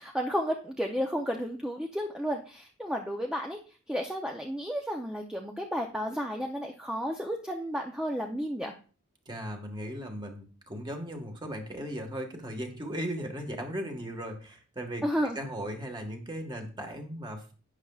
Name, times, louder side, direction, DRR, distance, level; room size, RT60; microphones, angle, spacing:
voice 1, 0.0-3.6 3.9-8.7 15.0-15.4, equal, 5° right, 2 dB, 0.6 m, -32 dB
voice 2, 9.3-15.0 15.3-17.5, equal, 20° right, 4 dB, 1.5 m, -37 dB
11.5 x 9.1 x 2.4 m, 0.38 s
head